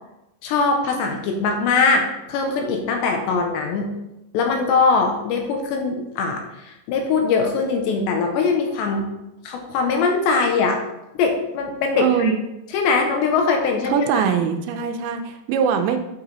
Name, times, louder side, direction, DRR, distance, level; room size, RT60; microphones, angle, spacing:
voice 1, 0.4-3.9 4.3-9.1 9.4-10.8 11.1-12.4 12.7-14.3, left 4 dB, 80° left, 3 dB, 3.0 m, -21 dB
voice 2, 12.0-12.4 13.9-16.0, right 7 dB, 80° right, 6 dB, 2.9 m, -21 dB
8.6 x 4.9 x 4.1 m, 0.90 s
omnidirectional pair, 5.2 m